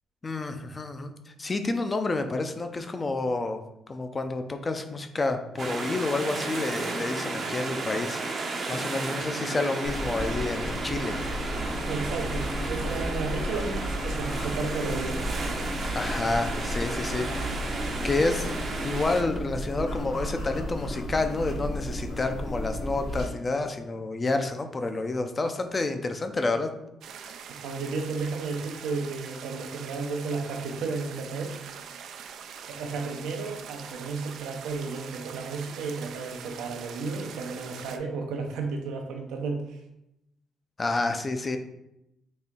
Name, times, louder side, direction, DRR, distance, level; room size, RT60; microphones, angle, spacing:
voice 1, 0.2-1.1 1.4-3.6 3.9-11.2 15.9-17.3 17.7-26.7 40.8-41.6, left 3 dB, 30° left, 7 dB, 0.5 m, -29 dB
sound 1, 5.6-19.2, right 3 dB, 50° right, 0.7 m, -33 dB
sound 2, 9.8-23.3, equal, 65° left, 1.3 m, -33 dB
voice 2, 11.9-15.2 27.5-31.6 32.7-39.8, right 4 dB, 90° right, 3 dB, 0.7 m, -33 dB
sound 3, 27.0-38.0, right 7 dB, 75° right, 0.3 m, -43 dB
4.2 x 2.8 x 3.6 m, 0.84 s
cardioid pair, 90°, 0 cm